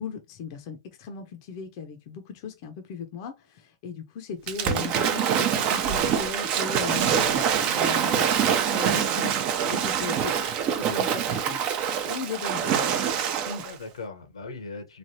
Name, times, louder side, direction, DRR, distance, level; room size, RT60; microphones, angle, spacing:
voice 1, 0.0-10.4 10.8-11.7 12.0-12.9 13.5-13.6, left 5 dB, 55° left, 0.6 m, -37 dB
Waves surf / Splash splatter, 4.5-13.7, right 8 dB, 40° right, 0.6 m, -25 dB
voice 2, 12.3-13.2 13.6-15.0, left 3 dB, 90° left, 1.0 m, -40 dB
3.2 x 2.3 x 2.7 m
hypercardioid pair, 115°, 3 cm